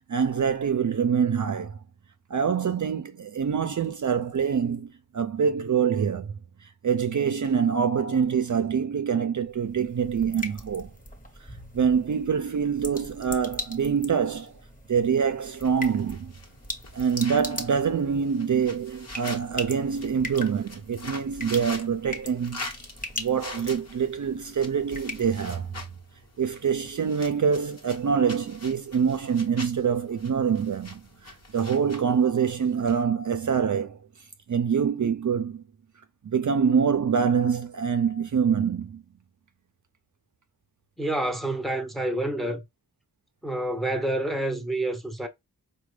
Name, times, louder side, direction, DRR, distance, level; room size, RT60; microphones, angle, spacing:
voice 1, 0.1-1.8 2.3-6.3 6.6-10.9 11.4-11.5 11.7-14.6 14.9-16.3 16.9-22.9 23.2-25.7 26.4-34.0 34.5-35.6 36.2-39.0, right 7 dB, 55° right, 0.5 m, -25 dB
sound 1, 9.4-25.9, left 1 dB, 20° left, 1.0 m, -41 dB
sound 2, 15.6-33.0, left 2 dB, 45° left, 1.1 m, -44 dB
voice 2, 41.0-42.6 43.4-45.3, right 1 dB, ahead, 0.8 m, -28 dB
4.8 x 2.2 x 3.1 m
wide cardioid pair, 75°, 37 cm